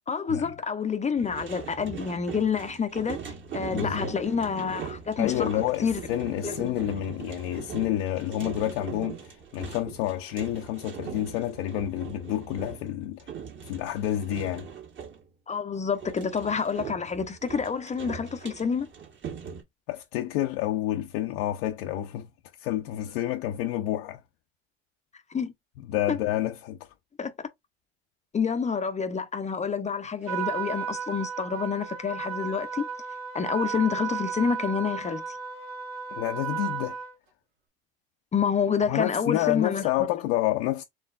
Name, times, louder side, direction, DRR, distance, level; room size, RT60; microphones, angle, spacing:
voice 1, 0.1-3.2 3.5-6.0 6.4-6.7 15.5-18.9 25.3-25.5 26.1-26.2 27.2-27.3 28.3-32.8 33.3-35.4 38.3-39.9, left 6 dB, 25° left, 0.6 m, -28 dB
sound 1, 1.2-15.2 15.9-19.6, right 7 dB, 40° right, 1.6 m, -41 dB
voice 2, 3.7-4.1 5.2-13.3 13.7-14.7 19.9-22.3 22.6-24.2 25.9-26.8 36.1-37.0 38.9-40.8, left 13 dB, 70° left, 0.7 m, -29 dB
Trumpet, 30.3-37.2, right 7 dB, 80° right, 1.6 m, -34 dB
4.6 x 3.2 x 2.4 m
hypercardioid pair, 85°, 30 cm